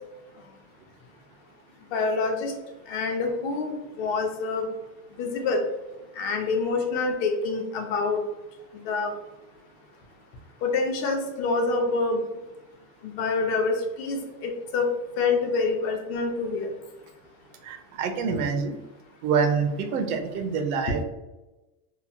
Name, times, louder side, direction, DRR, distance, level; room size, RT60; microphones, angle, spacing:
voice 1, 1.9-2.5 2.9-4.7 5.2-5.6 6.2-8.2 8.9-9.1 10.6-12.2 13.0-14.9 15.2-16.7 18.3-18.4, left 3 dB, 50° left, 4 dB, 0.5 m, -26 dB
voice 2, 17.6-18.7 19.2-21.0, right 5 dB, 85° right, 7 dB, 0.6 m, -26 dB
2.9 x 2.1 x 2.6 m, 1.1 s
supercardioid pair, 160°, 43 cm